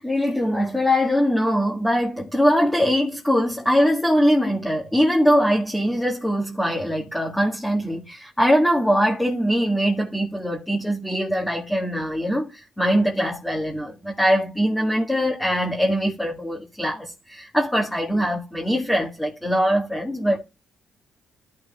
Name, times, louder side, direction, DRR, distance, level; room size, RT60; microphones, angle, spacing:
voice 1, 0.0-20.4, equal, 5° left, 2.0 m, -22 dB
14.5 x 6.2 x 2.4 m
cardioid pair, 90°, 0 cm